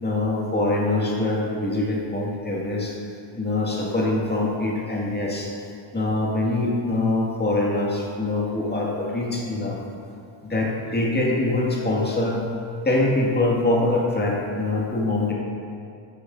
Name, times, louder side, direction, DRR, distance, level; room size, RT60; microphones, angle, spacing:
voice 1, 0.0-2.9 3.4-5.5 5.9-9.8 10.4-12.4 12.8-15.3, left 2 dB, 20° left, -3 dB, 2.0 m, -24 dB
12.5 x 6.5 x 2.7 m, 2.4 s
supercardioid pair, 80°, 49 cm